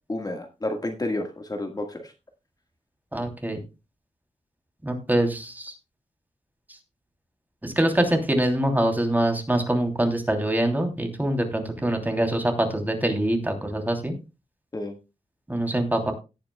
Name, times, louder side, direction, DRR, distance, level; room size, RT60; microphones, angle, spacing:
voice 1, 0.1-2.1 14.7-14.9, left 1 dB, 30° left, 4 dB, 1.6 m, -30 dB
voice 2, 3.1-3.6 4.8-5.7 7.6-14.1 15.5-16.1, right 1 dB, 15° right, 5 dB, 3.0 m, -24 dB
17.5 x 9.0 x 2.2 m, 0.27 s
wide cardioid pair, 110°, 12 cm